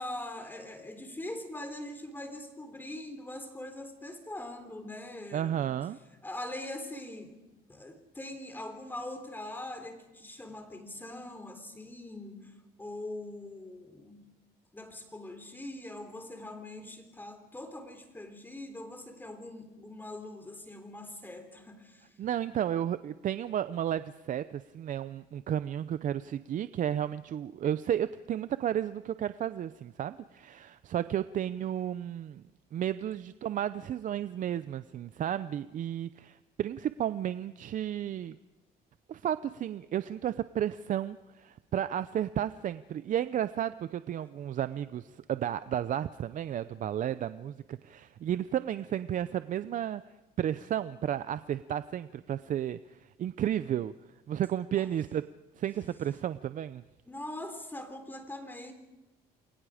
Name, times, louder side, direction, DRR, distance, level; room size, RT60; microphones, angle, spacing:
voice 1, 0.0-5.7 6.2-14.2 14.7-22.1 54.8-54.9 57.1-58.7, left 1 dB, 10° left, 6 dB, 3.7 m, -42 dB
voice 2, 5.3-6.0 22.2-32.4 32.7-38.3 39.1-50.0 50.4-53.9 54.3-55.3 55.6-56.8, right 10 dB, 50° right, 13 dB, 0.6 m, -33 dB
29.0 x 22.0 x 5.0 m, 1.1 s
cardioid pair, 110°, 17 cm